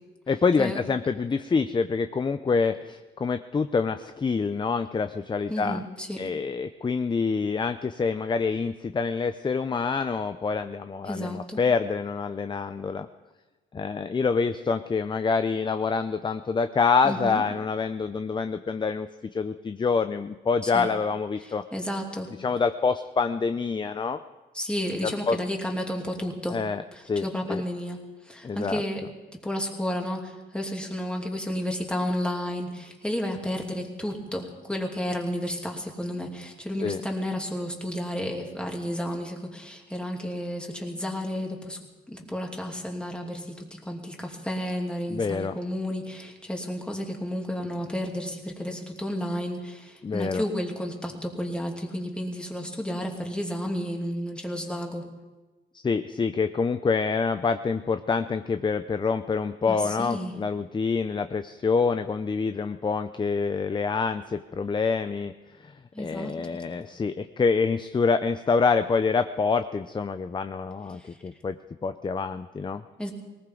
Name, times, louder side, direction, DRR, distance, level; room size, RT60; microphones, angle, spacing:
voice 1, 0.3-5.8 6.2-13.1 13.7-21.6 22.4-24.2 25.3-25.4 26.5-27.6 28.4-28.8 36.8-37.0 45.1-45.6 50.0-50.4 55.8-65.3 65.6-65.7 66.0-71.5 71.8-72.8, left 5 dB, 25° left, 10 dB, 0.5 m, -26 dB
voice 2, 5.5-6.2 11.0-11.6 17.0-17.4 20.6-20.9 21.4-22.3 24.5-26.6 26.9-41.8 42.1-55.1 59.7-60.4 65.9-66.6 71.0-71.1 73.0-73.1, equal, 5° left, 0 dB, 2.7 m, -32 dB
19.5 x 18.5 x 3.9 m, 1.2 s
cardioid pair, 90°, 20 cm